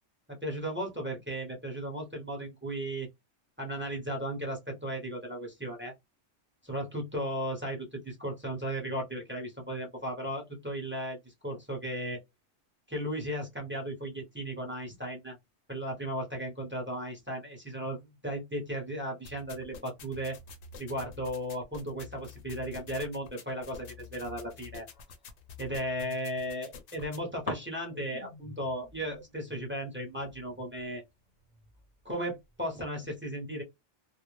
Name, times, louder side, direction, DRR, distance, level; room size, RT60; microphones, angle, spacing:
voice 1, 0.3-3.1 3.6-5.9 6.6-12.2 12.9-15.4 15.7-20.4 20.8-24.9 25.6-31.0 32.0-33.6, equal, 10° right, 0.6 m, -36 dB
sound 1, 19.2-27.2, left 5 dB, 75° left, 0.9 m, -49 dB
sound 2, 23.5-25.6 26.2-27.1 27.5-32.9, left 2 dB, 35° left, 0.7 m, -48 dB
2.4 x 2.0 x 3.1 m
omnidirectional pair, 1.3 m